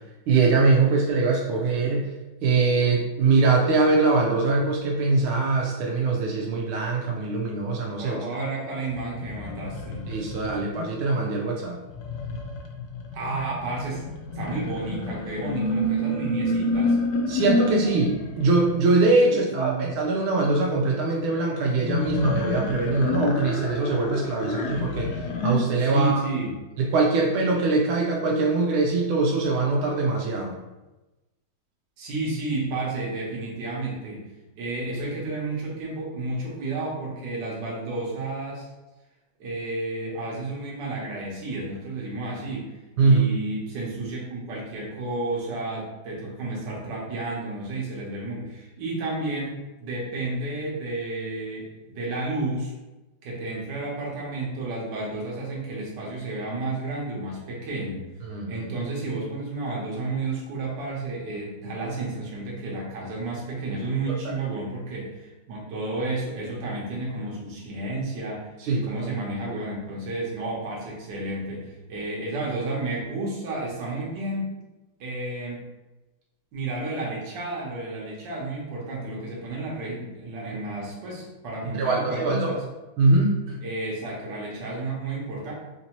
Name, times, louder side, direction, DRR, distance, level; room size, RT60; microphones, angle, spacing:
voice 1, 0.3-2.1 2.4-8.2 10.1-11.7 17.3-26.3 26.8-30.6 43.0-43.2 58.2-58.6 64.1-64.3 68.6-68.9 81.6-82.5 83.0-83.6, right 3 dB, 85° right, -1 dB, 1.4 m, -22 dB
voice 2, 8.0-10.1 13.1-14.0 14.3-17.0 19.2-19.9 25.8-26.5 32.0-34.2 34.6-38.7 39.4-52.7 53.2-58.1 58.5-74.5 75.0-75.6 76.5-82.6 83.6-85.5, right 2 dB, 65° right, -4 dB, 1.6 m, -31 dB
sound 1, 8.9-10.8 11.9-18.7 21.8-25.6, left 2 dB, 80° left, 0.8 m, -28 dB
4.4 x 2.6 x 2.9 m, 1.1 s
omnidirectional pair, 2.2 m